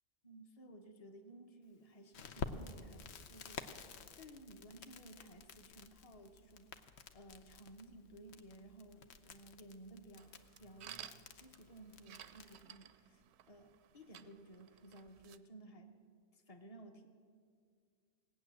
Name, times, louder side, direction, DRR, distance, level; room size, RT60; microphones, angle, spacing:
voice 1, 0.2-6.7 7.1-16.0 16.3-17.1, right 1 dB, 30° left, 5 dB, 1.1 m, -57 dB
Crackle, 2.1-12.7, left 5 dB, 65° left, 1.0 m, -51 dB
sound 1, 10.2-15.4, right 10 dB, 70° right, 0.8 m, -56 dB
18.0 x 9.1 x 7.4 m, 2.1 s
omnidirectional pair, 1.2 m